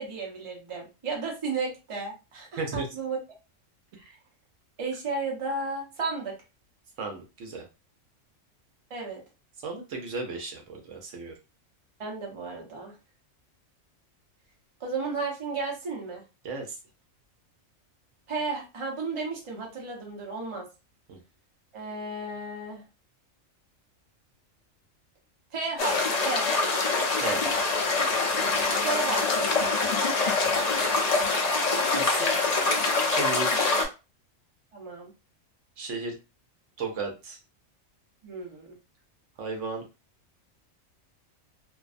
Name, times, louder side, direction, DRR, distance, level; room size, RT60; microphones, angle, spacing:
voice 1, 0.0-3.2 4.0-4.2 4.8-6.4 8.9-9.2 12.0-12.9 14.8-16.2 18.3-20.7 21.7-22.8 25.5-26.5 28.8-29.5 34.7-35.1 38.2-38.8, right 3 dB, 30° right, -1 dB, 0.6 m, -33 dB
voice 2, 7.0-7.7 9.6-11.3 16.4-16.8 21.1-21.2 27.2-27.5 30.4-30.6 31.9-32.4 33.1-33.8 35.8-36.1 36.8-37.4 39.4-39.8, right 4 dB, 70° right, 2 dB, 0.9 m, -34 dB
sound 1, 25.8-33.9, left 3 dB, 75° left, 0.3 m, -25 dB
2.6 x 2.2 x 2.4 m, 0.28 s
omnidirectional pair, 1.4 m